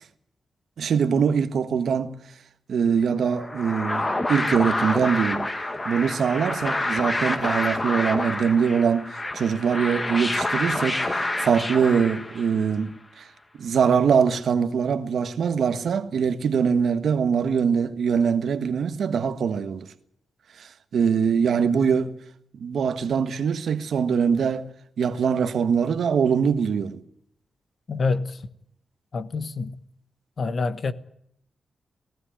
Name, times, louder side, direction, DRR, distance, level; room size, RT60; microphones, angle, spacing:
voice 1, 0.8-2.2 2.7-5.5 5.8-13.3 13.6-19.9 20.6-22.1 22.5-24.7 25.0-27.0, right 6 dB, 70° right, 1.4 m, -23 dB
sound 1, 3.3-12.7, left 2 dB, 20° left, 1.6 m, -28 dB
voice 2, 27.9-28.4 29.1-29.8 30.4-30.9, left 4 dB, 45° left, 1.2 m, -26 dB
18.0 x 16.0 x 10.0 m
wide cardioid pair, 155°, 0 cm